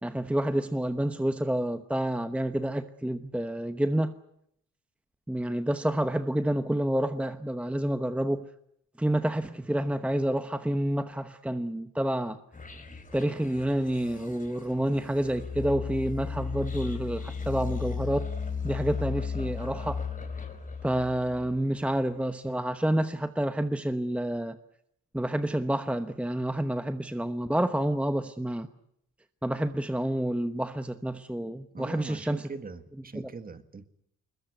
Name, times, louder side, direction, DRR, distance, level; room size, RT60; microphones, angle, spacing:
voice 1, 0.0-4.1 5.3-8.5 9.0-12.4 13.1-18.3 18.6-20.0 20.8-24.6 25.1-28.7 29.4-32.5 33.1-33.3, right 1 dB, 5° right, 1.0 m, -29 dB
sound 1, 12.5-21.7, left 5 dB, 25° left, 4.2 m, -36 dB
voice 2, 31.7-33.9, right 4 dB, 30° right, 1.7 m, -41 dB
21.5 x 21.0 x 9.4 m
cardioid pair, 90°, 30 cm